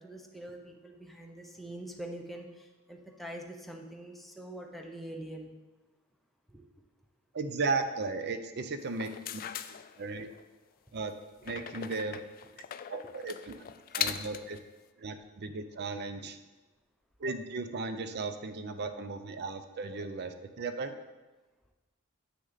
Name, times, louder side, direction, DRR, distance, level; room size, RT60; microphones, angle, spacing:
voice 1, 0.0-5.5 6.5-6.6 15.5-15.6 16.2-16.3, right 1 dB, ahead, 1 dB, 0.8 m, -44 dB
voice 2, 7.3-9.4 10.0-10.3 10.9-11.1 11.4-12.2 12.9-14.6 15.0-16.4 17.2-21.0, right 3 dB, 50° right, 9 dB, 0.5 m, -36 dB
sound 1, 8.9-10.4 11.4-14.6, left 9 dB, 40° left, 0.3 m, -39 dB
7.8 x 6.2 x 4.0 m, 1.2 s
head